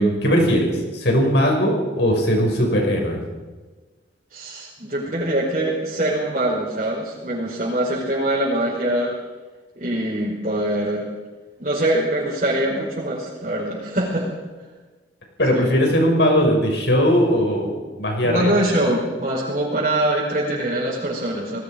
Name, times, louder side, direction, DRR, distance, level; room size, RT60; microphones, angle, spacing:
voice 1, 0.0-3.2 12.7-12.8 15.4-18.5, equal, 70° left, 1 dB, 6.4 m, -19 dB
voice 2, 4.3-9.1 9.7-11.0 11.6-14.3 15.5-15.7 18.2-21.6, right 1 dB, 45° right, -5 dB, 5.1 m, -23 dB
30.0 x 19.5 x 5.3 m, 1.3 s
head